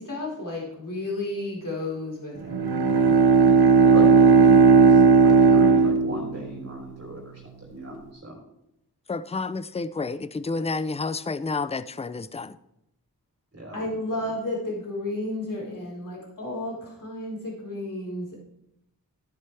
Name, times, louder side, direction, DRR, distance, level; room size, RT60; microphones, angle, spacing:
voice 1, 0.0-3.2 13.7-18.4, left 1 dB, 55° left, -4 dB, 4.2 m, -32 dB
Bowed string instrument, 2.4-6.8, right 5 dB, 90° right, 0.8 m, -16 dB
voice 2, 3.8-8.4 13.5-13.8, right 1 dB, 40° right, -2 dB, 3.7 m, -38 dB
voice 3, 9.1-12.6, left 3 dB, 15° left, 15 dB, 0.5 m, -30 dB
14.0 x 9.9 x 3.3 m, 0.81 s
wide cardioid pair, 80°, 38 cm